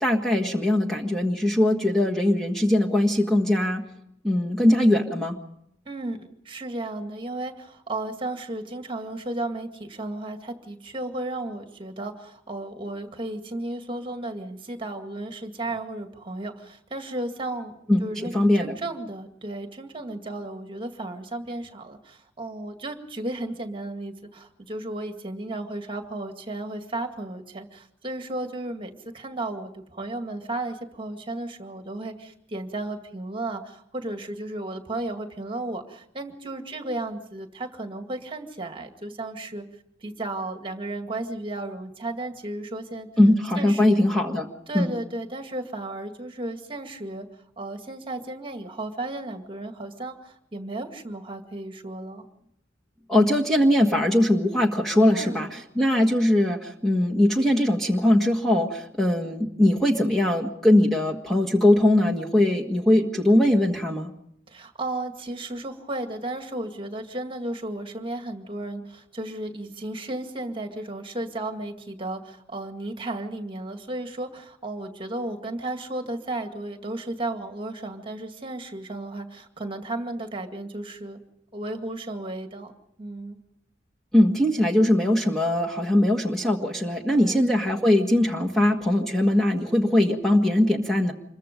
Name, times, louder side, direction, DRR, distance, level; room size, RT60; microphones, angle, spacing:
voice 1, 0.0-3.8 4.2-5.4 17.9-18.8 43.2-44.5 44.7-44.9 53.1-64.1 84.1-91.1, left 1 dB, ahead, -1 dB, 1.6 m, -21 dB
voice 2, 5.9-6.2 6.5-17.7 18.0-39.6 40.0-43.1 43.6-44.0 44.7-47.3 47.6-52.2 55.1-56.1 64.5-81.2 81.5-82.7 83.0-83.4 87.1-87.5, right 2 dB, 30° right, 5 dB, 2.1 m, -34 dB
26.5 x 22.5 x 5.3 m, 0.76 s
head